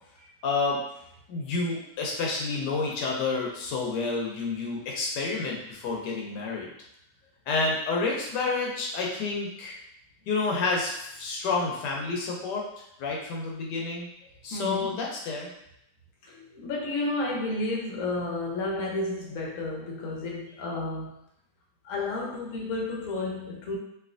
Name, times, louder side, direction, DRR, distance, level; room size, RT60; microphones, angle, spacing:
voice 1, 0.2-0.8 1.3-6.7 7.5-9.7 10.3-12.6 13.0-14.1 14.4-15.5, left 3 dB, 80° left, -1 dB, 1.2 m, -29 dB
voice 2, 14.5-15.0 16.2-21.2 21.8-23.8, left 2 dB, 60° left, -2 dB, 1.0 m, -31 dB
3.2 x 2.6 x 2.5 m, 0.77 s
omnidirectional pair, 1.8 m